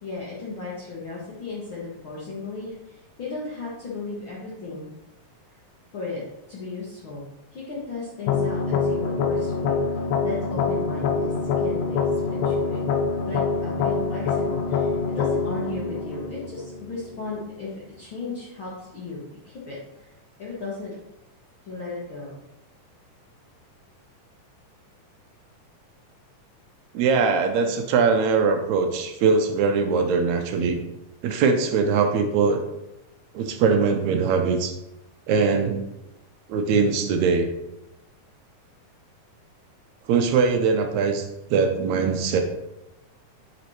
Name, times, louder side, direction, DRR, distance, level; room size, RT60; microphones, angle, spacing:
voice 1, 0.0-4.9 5.9-6.2 6.5-7.2 7.5-9.8 10.2-12.8 13.3-20.1 20.4-20.9 21.6-22.4, left 3 dB, 60° left, -6 dB, 1.4 m, -35 dB
sound 1, 8.3-17.3, left 5 dB, 90° left, 2.2 m, -25 dB
voice 2, 26.9-30.8 31.2-32.6 33.3-34.7 35.3-35.8 36.5-37.5 40.1-42.4, right 5 dB, 80° right, 5 dB, 1.7 m, -21 dB
9.6 x 4.1 x 3.1 m, 0.90 s
omnidirectional pair, 3.7 m